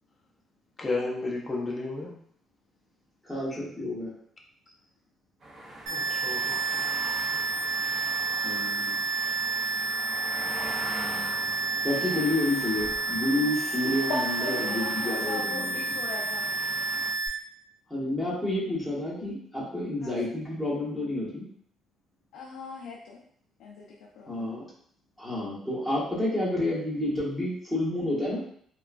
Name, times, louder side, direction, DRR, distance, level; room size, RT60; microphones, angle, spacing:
voice 1, 0.8-2.2 5.9-6.6, left 3 dB, 20° left, -1 dB, 0.5 m, -32 dB
voice 2, 3.2-4.1 8.4-8.9 11.8-15.8 17.9-21.4 24.3-24.7 25.2-28.4, left 1 dB, ahead, -8 dB, 1.1 m, -29 dB
sound 1, 5.4-17.1, right 1 dB, 35° right, 0.6 m, -42 dB
sound 2, 5.9-17.3, right 3 dB, 85° right, 0.8 m, -30 dB
voice 3, 14.1-16.5 20.0-20.1 22.3-23.2 23.6-24.5, left 3 dB, 80° left, -3 dB, 0.4 m, -38 dB
2.9 x 2.2 x 2.4 m, 0.63 s
cardioid pair, 145°, 0 cm